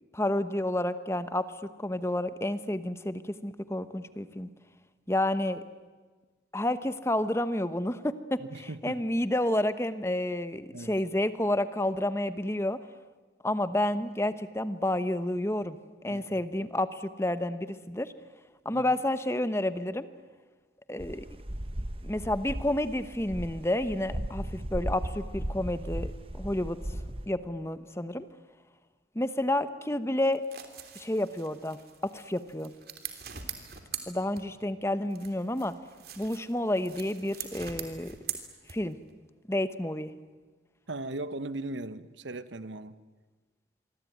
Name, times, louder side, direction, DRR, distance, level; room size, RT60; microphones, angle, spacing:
voice 1, 0.1-4.5 5.1-5.6 6.5-12.8 13.4-15.8 16.0-18.1 18.6-20.1 20.9-21.3 22.0-26.8 27.3-28.3 29.1-30.4 30.9-32.7 34.1-35.7 36.2-38.2 38.7-39.0 39.5-40.1, left 1 dB, 15° left, 1.0 m, -30 dB
voice 2, 8.4-9.0 10.7-10.9 16.0-16.4 18.7-18.8 40.9-43.0, right 2 dB, 90° right, 1.2 m, -38 dB
sound 1, 21.0-27.2, right 1 dB, 30° right, 1.3 m, -36 dB
sound 2, 30.2-34.8 35.1-39.1, right 9 dB, 55° right, 3.1 m, -43 dB
27.0 x 23.5 x 9.4 m
head